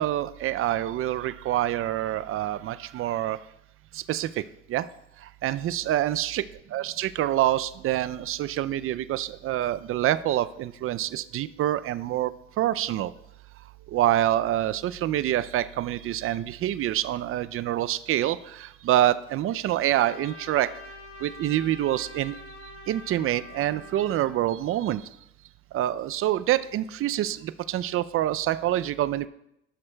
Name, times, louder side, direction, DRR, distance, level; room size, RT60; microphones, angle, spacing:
voice 1, 0.0-3.4 3.9-4.4 4.7-4.9 5.4-13.1 13.9-20.7 21.2-22.4 22.9-25.0 25.7-29.3, right 13 dB, 50° right, 15 dB, 0.4 m, -26 dB
Trumpet, 19.8-24.5, left 3 dB, 50° left, 1.6 m, -45 dB
12.5 x 6.3 x 2.2 m, 0.80 s
supercardioid pair, 70°, 29 cm